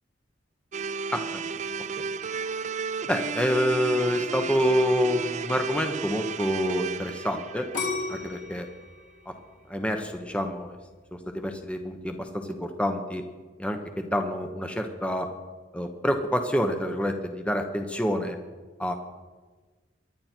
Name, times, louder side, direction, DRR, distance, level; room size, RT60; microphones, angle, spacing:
sound 1, 0.7-8.8, right 5 dB, 40° right, 0.5 m, -33 dB
voice 1, 1.1-1.4 2.0-2.1 3.1-7.7 8.1-8.7 9.7-10.8 11.3-13.2 13.6-15.3 15.7-18.4 18.8-18.9, equal, 5° left, 5 dB, 1.0 m, -27 dB
sound 2, 7.7-10.7 11.2-11.7, left 3 dB, 45° left, 3.2 m, -34 dB
23.5 x 10.5 x 4.5 m, 1.3 s
head